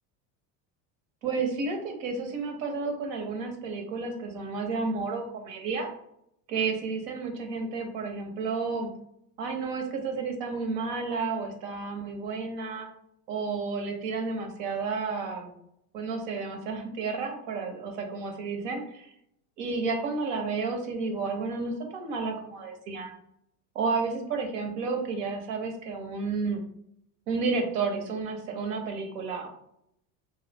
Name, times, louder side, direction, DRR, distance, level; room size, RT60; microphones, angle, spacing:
voice 1, 1.2-5.9 6.5-8.9 9.4-12.9 13.3-15.5 15.9-19.1 19.6-23.1 23.7-26.6 27.3-29.5, right 4 dB, 70° right, 3 dB, 1.1 m, -31 dB
2.8 x 2.4 x 4.0 m, 0.73 s
supercardioid pair, 110°, 48 cm